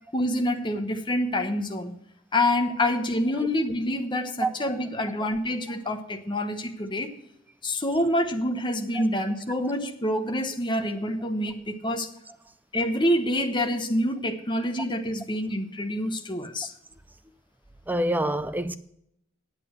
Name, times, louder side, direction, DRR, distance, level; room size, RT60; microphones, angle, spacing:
voice 1, 0.1-1.9 2.3-7.1 7.6-12.1 12.7-16.7, left 1 dB, 25° left, 1.0 m, -27 dB
voice 2, 17.9-18.8, right 1 dB, 10° right, 0.4 m, -26 dB
8.9 x 8.5 x 6.3 m
head